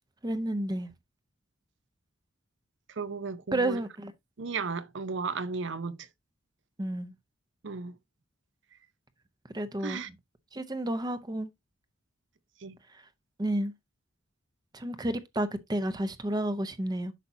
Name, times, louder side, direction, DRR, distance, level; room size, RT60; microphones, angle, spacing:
voice 1, 0.2-0.9 3.5-4.1 6.8-7.1 9.5-10.0 10.5-11.5 13.4-13.7 14.7-17.1, right 1 dB, 20° right, 0.7 m, -31 dB
voice 2, 3.0-3.8 4.4-6.1 7.6-8.0 9.8-10.1 12.6-12.8, right 4 dB, 65° right, 0.7 m, -34 dB
8.3 x 5.9 x 2.7 m
head